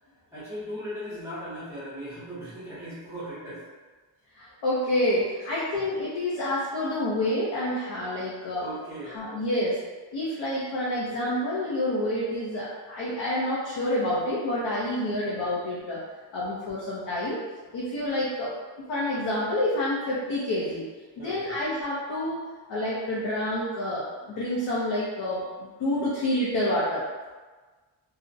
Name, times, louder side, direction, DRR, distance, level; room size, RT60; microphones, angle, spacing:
voice 1, 0.3-3.7 5.4-5.5 8.2-8.3 8.6-9.2 21.2-21.6, equal, 5° right, -12 dB, 0.5 m, -38 dB
voice 2, 4.3-8.6 9.0-9.8 10.1-16.0 16.3-17.4 17.7-18.5 18.9-20.8 21.2-22.4 22.7-27.1, left 1 dB, 70° left, -7 dB, 0.6 m, -28 dB
2.4 x 2.0 x 2.5 m, 1.3 s
wide cardioid pair, 155°, 44 cm